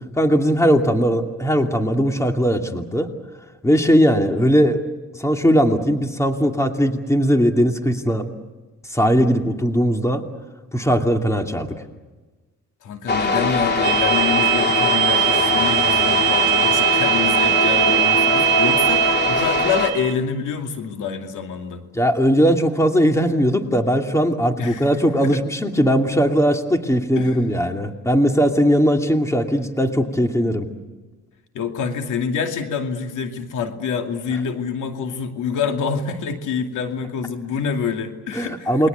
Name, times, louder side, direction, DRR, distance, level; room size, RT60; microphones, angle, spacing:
voice 1, 0.0-3.1 3.6-4.8 5.2-8.3 8.9-10.3 10.7-11.8 21.9-30.7 38.3-38.9, equal, 10° left, 5 dB, 2.6 m, -19 dB
voice 2, 12.8-21.8 24.6-24.9 25.2-25.4 27.2-27.4 31.5-38.9, left 6 dB, 80° left, 5 dB, 2.5 m, -26 dB
sound 1, 13.1-19.9, left 3 dB, 35° left, 3.6 m, -21 dB
sound 2, 13.8-20.1, right 17 dB, 85° right, 1.0 m, -21 dB
29.0 x 21.5 x 8.2 m, 1.3 s
cardioid pair, 90°, 30 cm